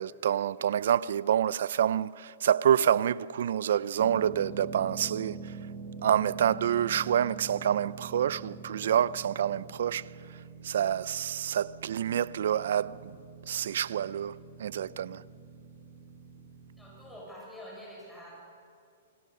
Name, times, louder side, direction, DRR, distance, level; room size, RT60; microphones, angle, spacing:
voice 1, 0.0-5.5 6.0-10.1 10.6-13.1 13.5-15.2, right 9 dB, 60° right, 0.5 m, -27 dB
sound 1, 4.0-17.2, right 4 dB, 15° right, 1.8 m, -45 dB
voice 2, 16.8-18.3, equal, ahead, 6.9 m, -46 dB
28.0 x 19.0 x 6.6 m
hypercardioid pair, 175°, 0 cm